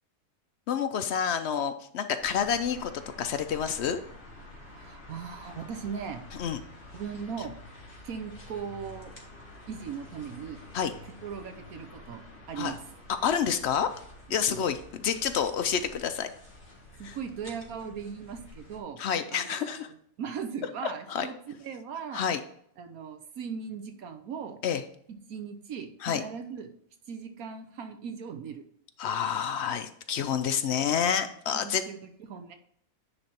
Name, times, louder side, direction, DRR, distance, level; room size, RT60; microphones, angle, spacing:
voice 1, 0.7-2.9 3.2-4.0 6.4-6.6 10.7-10.9 12.6-12.7 13.2-13.9 14.3-16.3 17.0-17.2 19.0-19.9 20.8-21.3 22.1-22.4 24.6-24.8 26.0-26.2 29.0-31.8, left 8 dB, 65° left, 9 dB, 0.7 m, -28 dB
sound 1, 2.2-18.8, left 1 dB, 45° left, 2.0 m, -49 dB
voice 2, 4.7-6.2 6.9-7.5 8.0-9.1 9.7-10.6 11.2-12.8 14.3-14.6 17.0-19.0 19.3-19.8 20.2-22.2 22.8-24.6 25.3-26.7 27.1-28.6 31.5-32.5, right 6 dB, 70° right, 6 dB, 1.2 m, -38 dB
9.8 x 3.4 x 4.3 m, 0.66 s
omnidirectional pair, 1.6 m